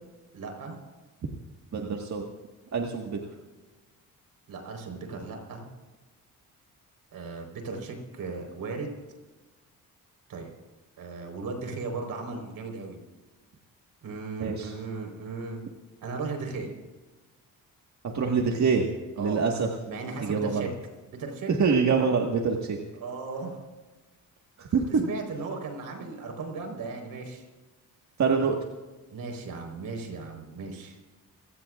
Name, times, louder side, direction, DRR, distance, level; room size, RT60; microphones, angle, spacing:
voice 1, 0.3-0.8 4.5-5.7 7.1-8.9 10.3-10.5 11.0-13.0 14.0-15.6 16.0-16.7 19.2-19.5 19.9-20.7 21.2-21.5 23.0-23.6 25.0-27.4 29.1-31.0, right 4 dB, 80° right, 3 dB, 4.4 m, -36 dB
voice 2, 1.7-2.2 2.7-3.2 14.4-14.7 18.0-18.8 19.2-19.7 20.2-20.7 21.6-22.8 24.6-25.0 28.2-28.6, right 5 dB, 50° right, 1 dB, 1.7 m, -25 dB
26.5 x 17.5 x 2.5 m, 1.2 s
cardioid pair, 105°, 35 cm